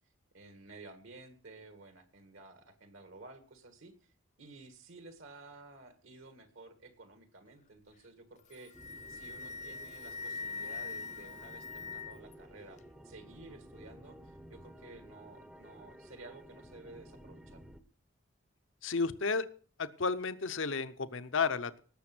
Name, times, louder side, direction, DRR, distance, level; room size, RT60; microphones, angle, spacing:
voice 1, 0.3-8.7 9.1-17.6, right 2 dB, 65° right, 8 dB, 2.0 m, -53 dB
Wind instrument woodwind instrument, 8.4-12.3, left 4 dB, 35° left, 0.5 m, -42 dB
sound 1, 8.7-17.8, right 1 dB, 5° right, 0.7 m, -54 dB
voice 2, 18.8-19.4 19.8-21.8, left 4 dB, 60° left, 13 dB, 0.8 m, -32 dB
18.5 x 7.0 x 6.1 m, 0.42 s
head